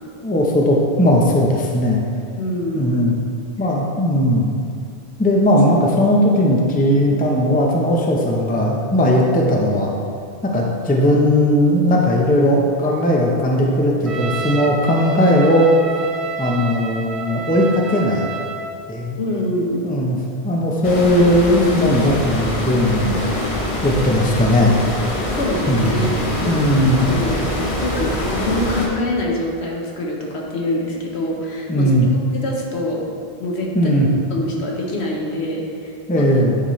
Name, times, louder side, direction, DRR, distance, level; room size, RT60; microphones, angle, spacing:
voice 1, 0.2-2.0 2.7-3.2 3.6-4.6 5.2-9.9 10.4-15.7 16.4-18.3 18.9-19.2 19.8-20.2 20.4-23.2 23.8-24.8 25.7-26.1 26.5-27.1 31.7-32.1 33.7-34.1 36.1-36.6, equal, 10° left, -1 dB, 0.5 m, -17 dB
voice 2, 2.4-3.0 5.8-5.9 7.1-7.2 19.2-20.0 25.3-27.4 27.8-33.0 33.4-34.0 34.3-36.4, left 1 dB, 75° left, -1 dB, 1.2 m, -25 dB
Trumpet, 14.1-18.8, right 5 dB, 65° right, 0.3 m, -29 dB
sound 1, 20.8-28.9, left 1 dB, 35° left, 0.9 m, -24 dB
9.2 x 4.2 x 3.1 m, 2.3 s
omnidirectional pair, 1.1 m